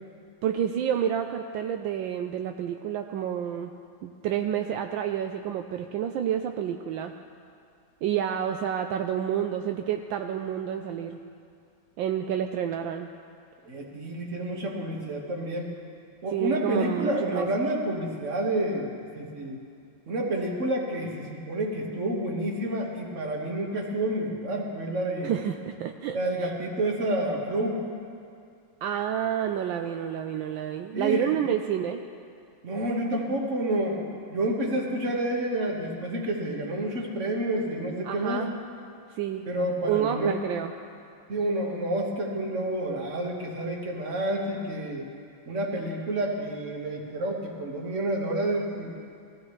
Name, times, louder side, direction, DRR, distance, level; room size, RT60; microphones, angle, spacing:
voice 1, 0.4-3.7 4.0-7.1 8.0-11.2 12.0-13.1 16.3-17.5 25.2-26.5 28.8-32.0 38.0-38.6 39.1-39.5 39.8-40.7, right 9 dB, 80° right, 6 dB, 1.3 m, -29 dB
voice 2, 13.6-15.7 16.2-19.6 20.1-25.3 26.1-27.9 30.9-31.3 32.6-38.5 39.5-40.3 41.3-45.1 45.5-49.0, right 1 dB, 40° right, 0 dB, 1.8 m, -29 dB
20.0 x 15.0 x 3.2 m, 2.4 s
omnidirectional pair, 2.1 m